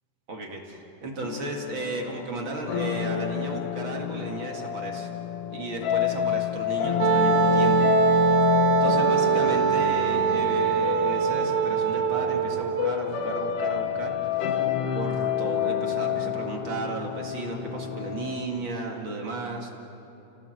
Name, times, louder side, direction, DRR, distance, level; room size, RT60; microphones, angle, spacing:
voice 1, 0.3-5.1 5.5-7.9 8.8-14.6 14.9-19.7, right 2 dB, 40° right, 1 dB, 2.2 m, -34 dB
sound 1, 1.2-18.5, left 9 dB, 90° left, 1.3 m, -28 dB
Wind instrument woodwind instrument, 7.0-13.0, right 9 dB, 80° right, 2.7 m, -23 dB
29.5 x 17.5 x 7.9 m, 3.0 s
omnidirectional pair, 4.4 m